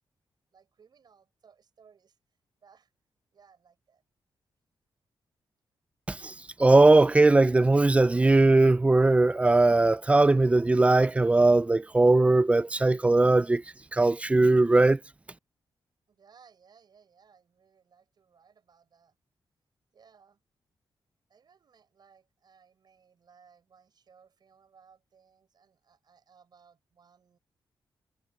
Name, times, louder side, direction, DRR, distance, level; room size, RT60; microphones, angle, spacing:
voice 1, 0.5-2.2 2.6-2.9 3.3-4.0 16.1-19.2 19.9-20.4 21.3-27.4, right 6 dB, 55° right, 6.2 m, -61 dB
voice 2, 6.6-13.6 13.9-15.0, right 2 dB, 15° right, 0.4 m, -20 dB
wide cardioid pair, 120°, 9 cm